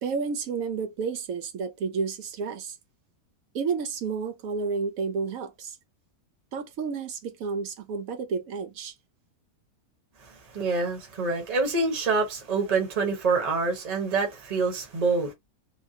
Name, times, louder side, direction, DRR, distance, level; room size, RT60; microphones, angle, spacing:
voice 1, 0.0-2.8 3.5-5.8 6.5-8.9, right 5 dB, 70° right, 1.0 m, -31 dB
voice 2, 10.3-15.3, right 4 dB, 30° right, 1.0 m, -26 dB
3.4 x 2.1 x 2.8 m
omnidirectional pair, 1.6 m